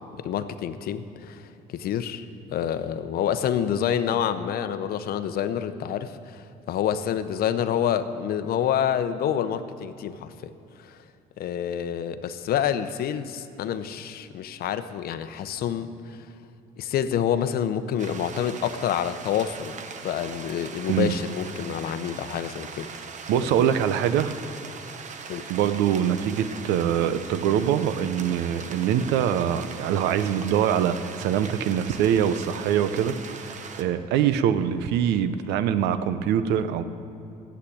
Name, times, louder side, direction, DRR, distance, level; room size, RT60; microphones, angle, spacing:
voice 1, 0.0-2.2 2.5-10.5 10.8-11.0 11.4-16.2 16.8-19.8 20.0-22.9 23.5-23.7 25.3-25.5, left 9 dB, 65° left, 11 dB, 0.8 m, -28 dB
sound 1, 18.0-33.8, right 5 dB, 45° right, 1.0 m, -40 dB
voice 2, 23.3-24.3 25.5-36.8, right 9 dB, 90° right, 11 dB, 0.7 m, -24 dB
11.5 x 8.2 x 8.5 m, 2.7 s
cardioid pair, 110°, 17 cm